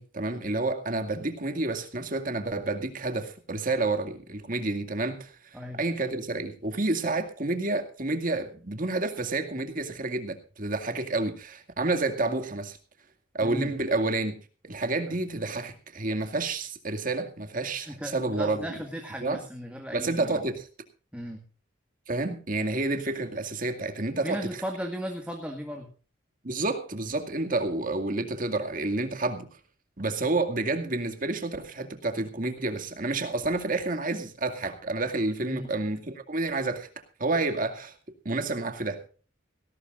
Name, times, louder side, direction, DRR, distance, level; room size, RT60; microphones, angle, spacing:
voice 1, 0.0-12.8 13.3-14.4 14.6-18.8 19.2-19.4 19.9-20.7 22.1-24.6 26.4-29.5 30.0-36.9 37.2-37.9 38.2-39.1, right 2 dB, 45° right, 2.2 m, -29 dB
voice 2, 17.9-20.3 21.1-21.4 24.2-25.9 35.4-35.7, equal, 5° right, 1.8 m, -36 dB
18.5 x 18.0 x 2.5 m
head